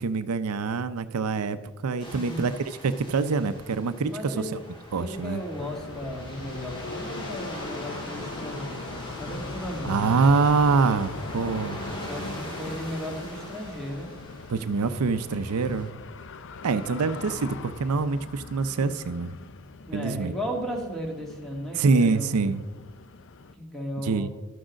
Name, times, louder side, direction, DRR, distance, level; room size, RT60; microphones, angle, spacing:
voice 1, 0.0-4.5 4.9-5.4 9.8-11.8 14.5-15.9 16.6-19.4 19.9-20.3 21.7-22.6 24.0-24.3, right 4 dB, 85° right, 12 dB, 0.5 m, -25 dB
sound 1, 2.0-15.9, equal, 25° left, 2.6 m, -42 dB
voice 2, 2.0-2.5 4.1-4.6 5.0-10.1 12.0-14.1 16.8-17.1 19.9-22.6 23.6-24.3, equal, ahead, 0 dB, 1.7 m, -35 dB
sound 2, 5.6-23.6, left 3 dB, 60° left, 0.6 m, -40 dB
12.5 x 6.3 x 6.3 m, 1.2 s
head